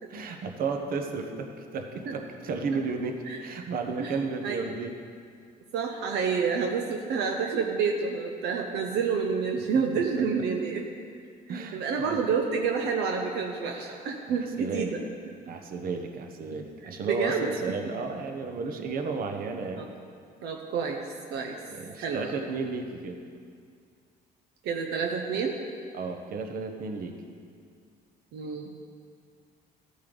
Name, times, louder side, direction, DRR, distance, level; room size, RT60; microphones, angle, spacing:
voice 1, 0.1-5.0 11.5-12.2 13.7-14.0 14.6-15.0 15.5-19.8 21.7-23.2 25.9-27.2, right 4 dB, 60° right, 4 dB, 1.1 m, -33 dB
voice 2, 5.7-10.9 11.5-15.0 16.8-17.5 19.8-19.9 20.4-21.0 21.3-21.6 22.0-22.3 24.6-25.5 28.3-28.7, right 5 dB, 80° right, 2 dB, 0.9 m, -29 dB
14.0 x 8.5 x 3.9 m, 2.2 s
cardioid pair, 110°, 17 cm